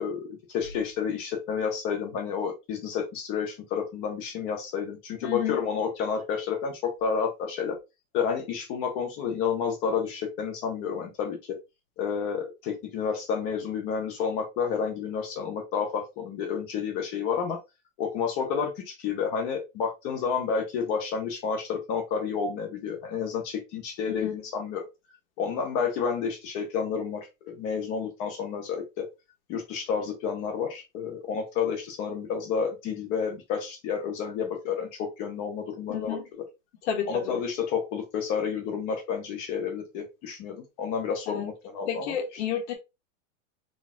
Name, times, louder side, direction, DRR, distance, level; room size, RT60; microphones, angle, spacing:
voice 1, 0.0-7.8 8.1-11.6 12.0-17.6 18.0-24.9 25.4-29.1 29.5-36.4 37.1-42.1, left 6 dB, 15° left, 0.4 m, -30 dB
voice 2, 5.2-5.6 24.1-24.3 35.9-36.2 36.8-37.4 41.3-41.4 41.9-42.7, left 8 dB, 55° left, 1.4 m, -31 dB
4.1 x 2.3 x 4.0 m
supercardioid pair, 175°, 40 cm